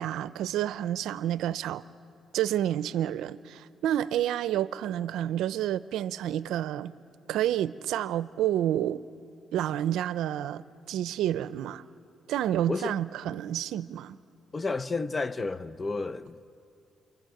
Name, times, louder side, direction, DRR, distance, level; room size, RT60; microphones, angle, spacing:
voice 1, 0.0-1.8 2.3-6.9 7.3-9.0 9.5-10.6 10.9-11.8 12.3-14.2, right 11 dB, 85° right, 0.5 m, -29 dB
voice 2, 14.5-16.5, left 3 dB, 25° left, 0.6 m, -31 dB
28.5 x 23.5 x 7.8 m
cardioid pair, 90°, 0 cm